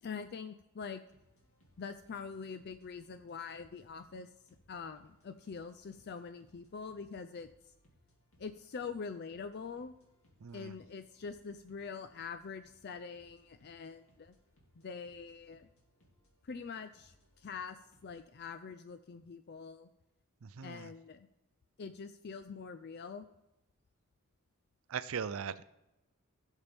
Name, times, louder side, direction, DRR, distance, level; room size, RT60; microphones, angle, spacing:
voice 1, 0.0-1.0 1.8-7.7 8.4-9.9 10.5-14.3 14.8-15.7 16.4-19.9 20.6-21.3 21.8-23.2, left 5 dB, 50° left, 10 dB, 0.4 m, -44 dB
sound 1, 1.1-18.4, equal, 65° left, 2.6 m, -69 dB
voice 2, 10.4-10.7 20.4-20.9 24.9-25.6, right 6 dB, 65° right, 15 dB, 0.5 m, -39 dB
16.0 x 7.3 x 3.4 m, 0.95 s
head